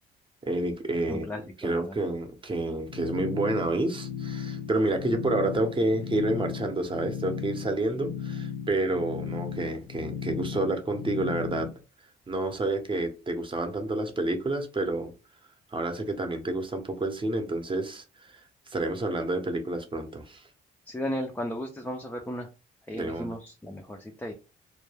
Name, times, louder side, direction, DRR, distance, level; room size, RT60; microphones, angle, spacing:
voice 1, 0.4-1.3 1.6-11.7 12.3-15.1 15.7-20.5 22.9-23.3, right 2 dB, 25° right, 0.7 m, -29 dB
voice 2, 1.1-2.0 20.9-22.5 22.9-24.3, equal, 10° left, 0.4 m, -35 dB
sound 1, 2.9-11.7, left 7 dB, 65° left, 0.6 m, -36 dB
2.2 x 2.1 x 3.2 m
cardioid pair, 90°, 20 cm